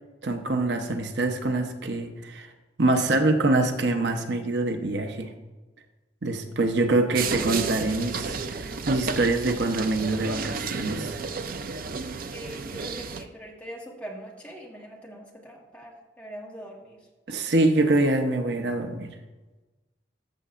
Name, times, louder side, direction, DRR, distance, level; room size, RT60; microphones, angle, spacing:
voice 1, 0.2-2.5 2.8-5.3 6.2-11.2 17.3-19.1, right 2 dB, 70° right, 6 dB, 0.8 m, -25 dB
sound 1, 7.1-13.2, right 5 dB, 50° right, 0.5 m, -32 dB
voice 2, 12.3-17.0, equal, 5° left, -2 dB, 1.4 m, -42 dB
14.0 x 6.7 x 2.5 m, 1.2 s
head